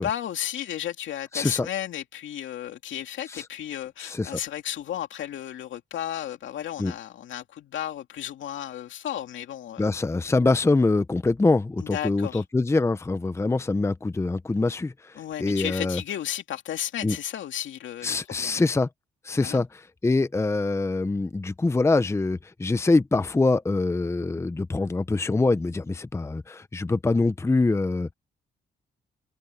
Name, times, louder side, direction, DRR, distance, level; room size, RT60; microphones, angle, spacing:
voice 1, 0.0-9.8 11.8-12.4 15.2-18.6 19.4-19.6, left 11 dB, 70° left, 2.5 m, -33 dB
voice 2, 1.3-1.7 3.3-3.4 4.0-4.4 6.8-6.9 9.8-16.0 17.0-17.2 18.0-18.9 19.2-28.1, left 3 dB, 15° left, 0.7 m, -24 dB
open air
cardioid pair, 90°, 20 cm